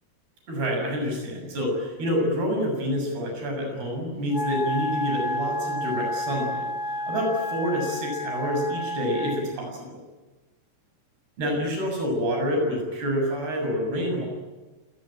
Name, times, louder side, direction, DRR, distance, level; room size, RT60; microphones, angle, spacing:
voice 1, 0.5-10.0 11.4-14.3, equal, 80° right, 2 dB, 9.0 m, -27 dB
Wind instrument woodwind instrument, 4.3-9.5, left 1 dB, 50° left, 1.5 m, -30 dB
28.0 x 20.5 x 9.0 m, 1.2 s
omnidirectional pair, 4.5 m